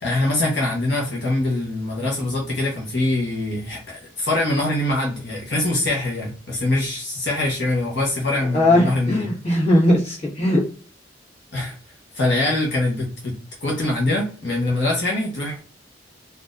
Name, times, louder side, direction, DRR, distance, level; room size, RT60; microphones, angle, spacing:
voice 1, 0.0-9.2 11.5-11.8 12.1-13.3 13.6-15.6, left 2 dB, 70° left, -2 dB, 1.0 m, -23 dB
voice 2, 8.5-10.6, left 1 dB, 35° left, -5 dB, 1.5 m, -18 dB
4.1 x 2.6 x 2.5 m, 0.42 s
head